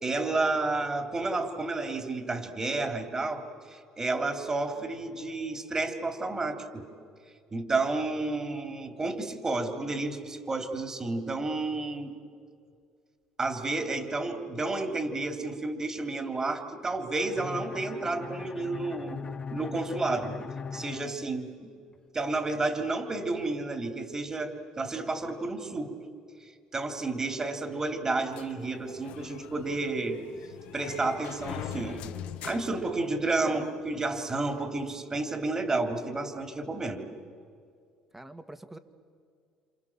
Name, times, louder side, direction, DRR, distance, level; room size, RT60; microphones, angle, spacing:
voice 1, 0.0-6.8 7.5-12.1 13.4-19.2 19.5-20.4 20.7-21.7 22.1-25.9 26.7-30.2 30.7-32.1 32.4-37.1, right 3 dB, 25° right, 6 dB, 3.6 m, -31 dB
Bowed string instrument, 17.2-22.0, left 5 dB, 35° left, 0.9 m, -40 dB
sound 1, 28.3-33.6, left 11 dB, 75° left, 1.3 m, -43 dB
voice 2, 33.4-34.0 38.1-38.8, right 1 dB, 10° right, 9 dB, 1.9 m, -46 dB
29.0 x 27.5 x 7.5 m, 2.2 s
supercardioid pair, 70°, 2 cm